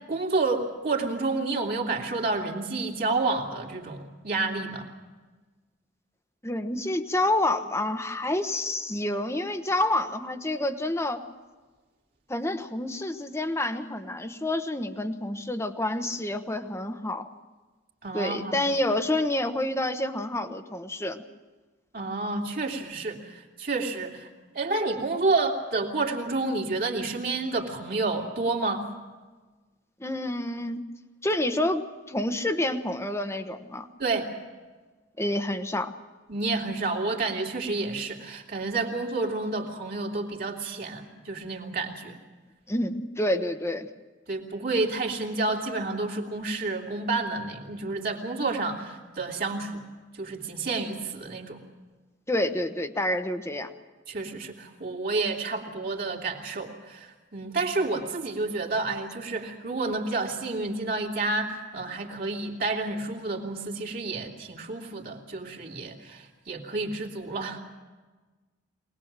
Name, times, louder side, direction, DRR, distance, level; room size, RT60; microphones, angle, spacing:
voice 1, 0.1-4.9 18.0-18.7 21.9-24.3 24.5-28.9 34.0-34.3 36.3-42.2 44.3-49.8 50.2-51.6 54.1-67.6, right 3 dB, 50° right, 1 dB, 2.9 m, -30 dB
voice 2, 6.4-11.2 12.3-17.3 18.1-21.2 30.0-30.8 31.2-33.9 35.2-35.9 42.7-43.9 52.3-53.7, left 1 dB, 15° left, 8 dB, 1.2 m, -28 dB
23.5 x 19.5 x 7.5 m, 1.3 s
head